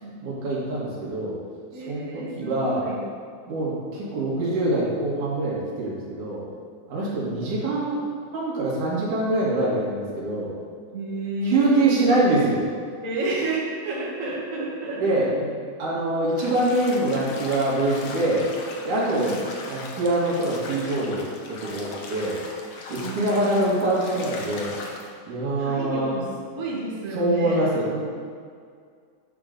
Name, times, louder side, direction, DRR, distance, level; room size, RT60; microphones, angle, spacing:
voice 1, 0.2-1.4 1.8-2.9 3.5-6.4 6.9-8.0 8.3-10.5 11.4-12.6 15.0-15.3 15.8-18.4 18.8-19.3 19.7-22.4 22.9-24.8 25.3-26.1 27.1-28.0, right 2 dB, 80° right, -6 dB, 3.4 m, -24 dB
voice 2, 1.7-3.0 7.0-7.3 10.9-11.9 13.0-15.3 19.0-19.4 23.0-23.7 25.6-26.2 26.5-27.6, right 2 dB, 30° right, -6 dB, 1.7 m, -30 dB
Bathtub (filling or washing), 16.3-25.1, left 3 dB, 80° left, 1.1 m, -39 dB
10.5 x 3.8 x 6.7 m, 2.1 s
omnidirectional pair, 3.6 m